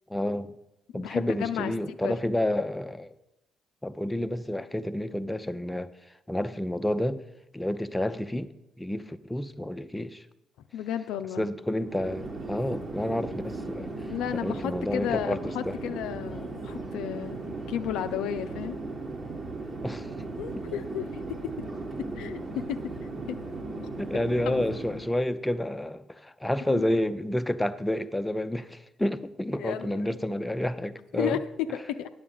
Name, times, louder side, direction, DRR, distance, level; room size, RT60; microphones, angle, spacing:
voice 1, 0.1-0.5 0.9-3.1 3.8-5.9 6.3-7.2 7.5-8.5 8.8-10.3 11.4-13.9 14.3-15.7 19.8-20.1 20.5-20.6 24.0-31.4, left 1 dB, 10° left, 0.6 m, -30 dB
voice 2, 0.9-1.7 2.0-2.2 10.7-11.5 14.1-18.8 20.4-21.2 22.1-22.9 23.3-23.4 24.5-24.6 26.7-26.9 29.6-30.2 31.1-32.1, left 10 dB, 70° left, 0.4 m, -33 dB
Chatter / Fixed-wing aircraft airplane, 11.8-25.2, right 3 dB, 40° right, 1.3 m, -37 dB
9.5 x 7.2 x 5.4 m
figure-of-eight pair, 45°, 0 cm